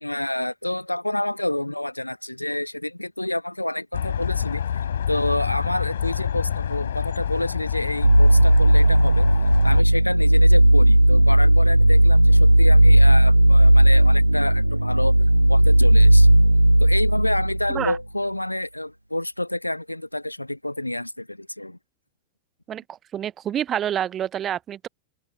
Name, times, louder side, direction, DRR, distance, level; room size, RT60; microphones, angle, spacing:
voice 1, 0.0-9.3 9.6-16.3 16.8-21.8, left 1 dB, 85° left, 1.0 m, -28 dB
sound 1, 3.9-9.8, left 8 dB, 65° left, 3.0 m, -27 dB
sound 2, 8.0-18.0, right 1 dB, 85° right, 0.7 m, -15 dB
voice 2, 23.1-24.9, right 10 dB, 25° right, 0.5 m, -27 dB
figure-of-eight pair, 90°, 0 cm